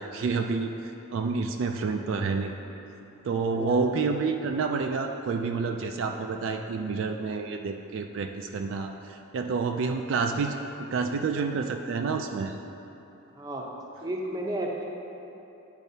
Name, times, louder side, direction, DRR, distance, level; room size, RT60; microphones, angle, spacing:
voice 1, 0.0-2.6 3.2-10.6 10.9-12.6, right 4 dB, 60° right, 4 dB, 0.3 m, -29 dB
voice 2, 3.4-4.0 7.2-7.4 13.4-13.7 14.0-14.8, right 1 dB, 20° right, -1 dB, 0.6 m, -33 dB
10.5 x 4.5 x 2.8 m, 2.9 s
head